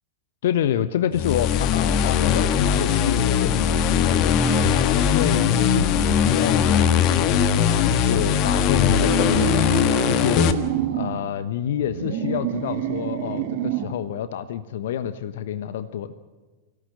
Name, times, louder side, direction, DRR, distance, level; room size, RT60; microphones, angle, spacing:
voice 1, 0.4-4.4 4.8-7.3 7.7-9.6 10.1-10.5 10.9-16.2, left 10 dB, 60° left, 13 dB, 1.1 m, -27 dB
sound 1, 1.1-10.5, left 8 dB, 40° left, 1.6 m, -20 dB
sound 2, 8.9-11.2 11.8-14.0, right 10 dB, 45° right, 2.0 m, -27 dB
24.0 x 17.5 x 8.0 m, 1.3 s
figure-of-eight pair, 90°, 0 cm